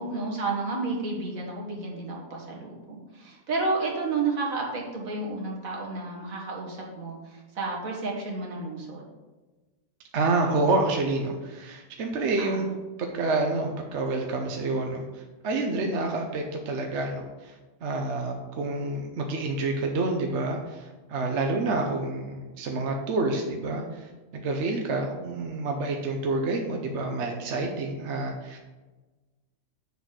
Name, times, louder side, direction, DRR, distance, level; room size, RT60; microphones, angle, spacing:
voice 1, 0.0-9.0 12.5-12.7, right 3 dB, 75° right, -1 dB, 2.0 m, -31 dB
voice 2, 10.1-28.6, right 2 dB, 60° right, 2 dB, 1.0 m, -28 dB
7.1 x 4.1 x 6.3 m, 1.2 s
omnidirectional pair, 1.4 m